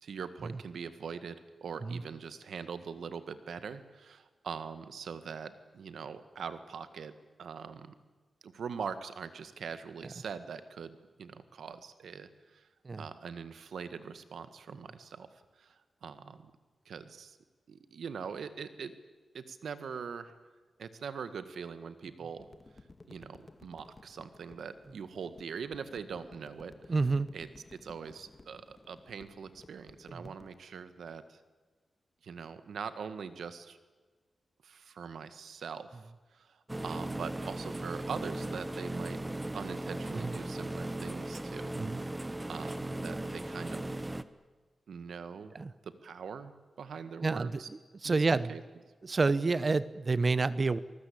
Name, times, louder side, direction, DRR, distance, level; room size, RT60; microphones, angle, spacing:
voice 1, 0.0-7.9 8.4-12.7 13.0-15.3 15.6-16.5 16.9-17.4 17.7-18.9 19.3-20.3 20.8-22.5 23.1-26.9 27.3-31.4 32.2-33.8 34.6-39.2 39.5-42.2 42.5-44.0 44.9-45.5 45.8-46.5 46.8-47.7 48.0-48.6, right 6 dB, 85° right, 11 dB, 1.8 m, -42 dB
sound 1, 22.4-30.6, left 3 dB, 35° left, 1.9 m, -56 dB
voice 2, 26.9-27.3 30.1-30.3 40.1-40.3 41.8-42.0 45.5-45.7 47.2-48.6 49.0-50.8, right 3 dB, 40° right, 16 dB, 0.8 m, -29 dB
sound 2, 36.7-44.2, right 1 dB, 15° right, 1.2 m, -37 dB
26.5 x 19.5 x 8.7 m, 1.3 s
wide cardioid pair, 90°, 0 cm